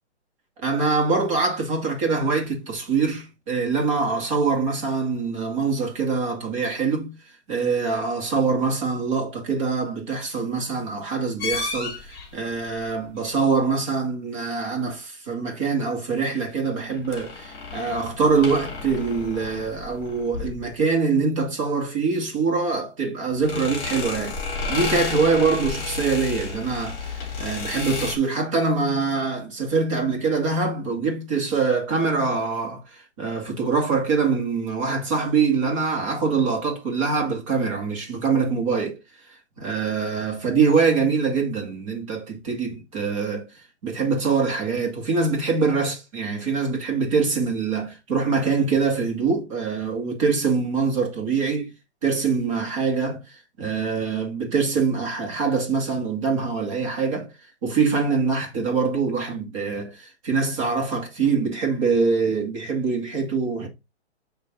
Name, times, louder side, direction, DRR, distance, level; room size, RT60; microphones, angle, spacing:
voice 1, 0.6-7.1 7.5-24.4 24.7-39.0 39.6-43.5 43.8-51.7 52.0-57.3 57.6-63.7, right 4 dB, 30° right, 2.1 m, -24 dB
sound 1, 11.4-12.3 16.9-20.7 23.4-28.2, left 4 dB, 20° left, 2.4 m, -32 dB
8.4 x 3.3 x 3.9 m
hypercardioid pair, 170°, 34 cm